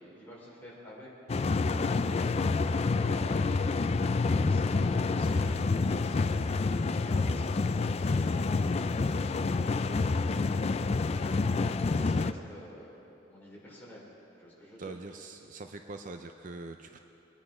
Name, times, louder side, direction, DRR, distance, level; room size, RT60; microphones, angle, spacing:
voice 1, 0.0-5.6 5.9-14.1 14.4-14.9, equal, 10° left, -5 dB, 3.6 m, -50 dB
sound 1, 1.3-12.3, left 3 dB, 35° left, 0.4 m, -28 dB
voice 2, 14.8-17.0, right 3 dB, 45° right, 6 dB, 0.5 m, -43 dB
23.0 x 10.0 x 4.9 m, 3.0 s
head